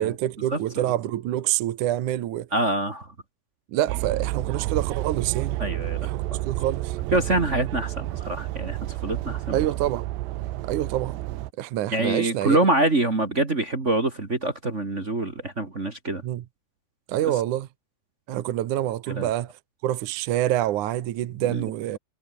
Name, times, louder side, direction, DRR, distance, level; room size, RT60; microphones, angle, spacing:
voice 1, 0.0-2.5 3.7-5.6 6.0-7.0 9.5-10.1 10.6-11.2 11.6-12.6 16.2-16.4 17.1-17.7 18.3-19.5 19.8-22.0, right 13 dB, 70° right, 2.0 m, -26 dB
voice 2, 2.5-3.1 5.6-6.4 7.1-9.6 11.9-16.2 17.2-17.3 19.1-19.3 21.5-21.6, right 2 dB, 30° right, 1.3 m, -25 dB
sound 1, 3.9-11.5, right 16 dB, 90° right, 3.3 m, -30 dB
omnidirectional pair, 5.0 m